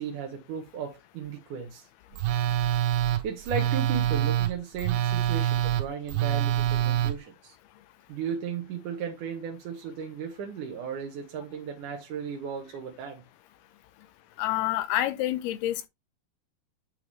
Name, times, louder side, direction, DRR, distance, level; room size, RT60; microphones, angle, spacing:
voice 1, 0.0-1.9 3.2-7.5 8.1-13.2, right 6 dB, 65° right, 2.4 m, -35 dB
Telephone, 2.2-7.1, right 11 dB, 90° right, 2.9 m, -25 dB
voice 2, 14.4-15.9, left 14 dB, 85° left, 2.7 m, -28 dB
8.8 x 4.6 x 3.3 m
omnidirectional pair, 4.6 m